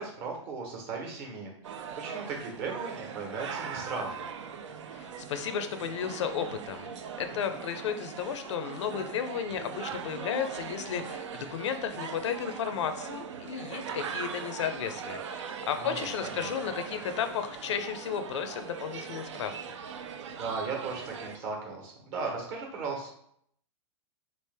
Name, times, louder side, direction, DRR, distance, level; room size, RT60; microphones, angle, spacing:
voice 1, 0.0-4.2 7.3-7.6 15.8-16.5 20.3-23.1, right 4 dB, 45° right, 0 dB, 1.2 m, -37 dB
sound 1, 1.6-21.4, right 6 dB, 75° right, 0.5 m, -40 dB
voice 2, 4.9-6.9 7.2-19.6, left 8 dB, 70° left, 8 dB, 0.5 m, -33 dB
3.3 x 2.5 x 3.4 m, 0.67 s
hypercardioid pair, 115°, 15 cm